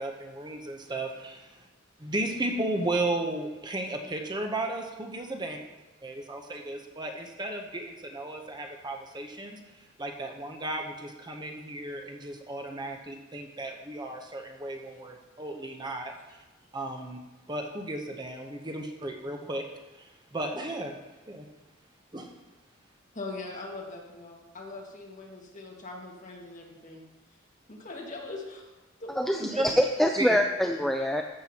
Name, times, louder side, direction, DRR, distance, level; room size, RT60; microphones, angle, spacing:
voice 1, 0.0-1.7 2.0-5.6 6.0-16.4 16.7-17.2 17.5-19.7 19.9-21.0 21.3-21.4 22.1-22.3 29.4-29.6 30.0-30.4, right 2 dB, 20° right, 3 dB, 0.8 m, -34 dB
voice 2, 23.1-27.0 27.7-28.7 29.0-29.7, left 2 dB, 40° left, -1 dB, 1.8 m, -41 dB
voice 3, 29.2-31.2, equal, ahead, 3 dB, 0.4 m, -25 dB
14.0 x 7.6 x 2.9 m, 1.1 s
head